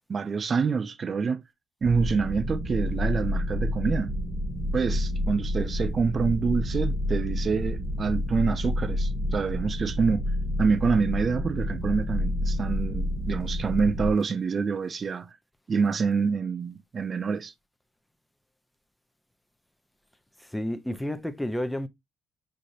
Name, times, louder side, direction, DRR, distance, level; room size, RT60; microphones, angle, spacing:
voice 1, 0.1-1.4 1.8-4.2 4.7-10.3 10.6-15.4 15.7-17.5, right 5 dB, 45° right, 0.4 m, -27 dB
sound 1, 1.8-14.1, left 1 dB, 25° right, 1.4 m, -29 dB
voice 2, 20.4-21.9, left 1 dB, 5° left, 0.7 m, -31 dB
6.5 x 2.5 x 2.7 m
cardioid pair, 90°, 0 cm